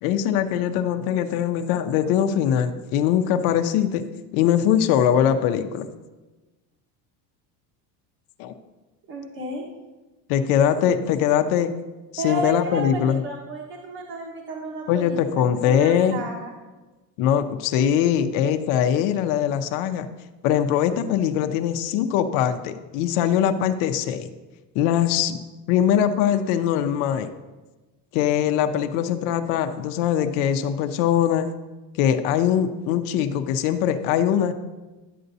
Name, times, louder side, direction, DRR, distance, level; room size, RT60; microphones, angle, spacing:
voice 1, 0.0-4.1 4.3-5.9 8.4-8.5 10.3-11.7 12.1-13.2 14.9-16.3 17.2-20.1 20.4-24.3 24.7-25.4 25.7-27.3 28.1-31.5 31.9-34.5, left 9 dB, 70° left, 7 dB, 0.7 m, -22 dB
voice 2, 9.1-9.7 12.2-15.2 15.6-16.5 17.9-18.1, right 2 dB, 55° right, -2 dB, 1.5 m, -32 dB
11.0 x 7.8 x 2.7 m, 1.2 s
cardioid pair, 145°, 45 cm